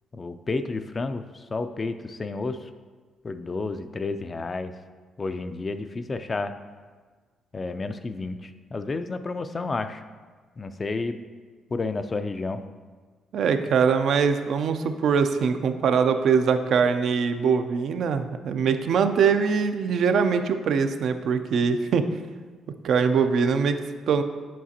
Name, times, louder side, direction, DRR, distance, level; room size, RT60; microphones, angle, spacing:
voice 1, 0.1-2.7 3.2-4.7 5.2-6.5 7.5-10.0 10.6-11.2 11.7-12.6, left 3 dB, 30° left, 10 dB, 0.3 m, -31 dB
voice 2, 13.3-22.0 22.8-23.8 24.1-24.2, right 6 dB, 70° right, 8 dB, 0.4 m, -22 dB
7.4 x 5.7 x 2.8 m, 1.4 s
cardioid pair, 90°, 0 cm